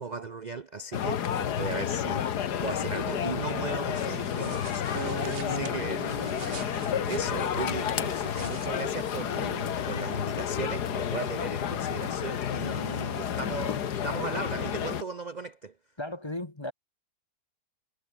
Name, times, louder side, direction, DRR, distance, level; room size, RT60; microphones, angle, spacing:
voice 1, 0.0-6.1 6.4-6.6 7.1-15.7, right 4 dB, 80° right, 0.4 m, -37 dB
sound 1, 0.9-15.0, left 9 dB, 70° left, 1.7 m, -31 dB
sound 2, 3.9-9.3, right 6 dB, 40° right, 1.2 m, -47 dB
Acoustic guitar, 4.9-9.3 9.9-10.1, right 5 dB, 60° right, 2.9 m, -41 dB
voice 2, 16.0-16.7, left 1 dB, 15° left, 1.3 m, -36 dB
omnidirectional pair, 1.9 m